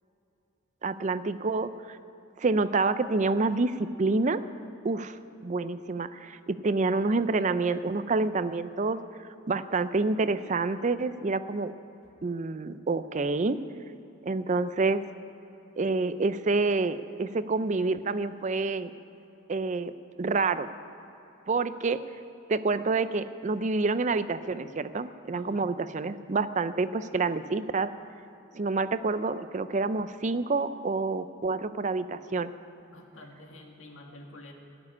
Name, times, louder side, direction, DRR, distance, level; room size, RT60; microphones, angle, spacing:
voice 1, 0.8-2.0 2.4-4.4 4.8-9.0 9.5-11.7 12.2-13.6 14.3-15.0 15.8-18.9 19.5-19.9 20.2-20.7 21.5-22.0 22.5-27.9 28.5-32.5, right 3 dB, 35° right, 13 dB, 0.4 m, -28 dB
voice 2, 25.3-25.7 32.8-34.5, left 1 dB, 80° left, 2 dB, 2.0 m, -49 dB
15.0 x 7.4 x 9.7 m, 3.0 s
head